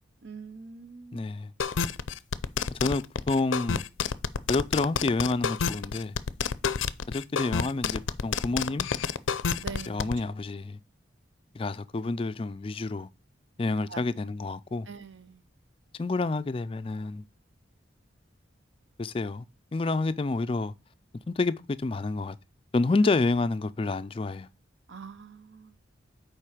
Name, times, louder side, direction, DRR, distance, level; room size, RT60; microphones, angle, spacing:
voice 1, 0.2-1.3 9.6-10.0 13.9-14.0 14.9-15.4 24.9-25.8, right 5 dB, 70° right, 0.7 m, -43 dB
voice 2, 1.1-1.5 2.8-3.8 4.5-6.1 7.1-8.9 9.9-10.8 11.5-13.1 13.6-14.9 16.0-17.2 19.0-19.4 19.7-20.7 21.3-22.4 22.7-24.5, left 3 dB, 30° left, 0.3 m, -28 dB
sound 1, 1.6-10.1, left 6 dB, 85° left, 0.5 m, -28 dB
7.4 x 4.6 x 4.9 m
head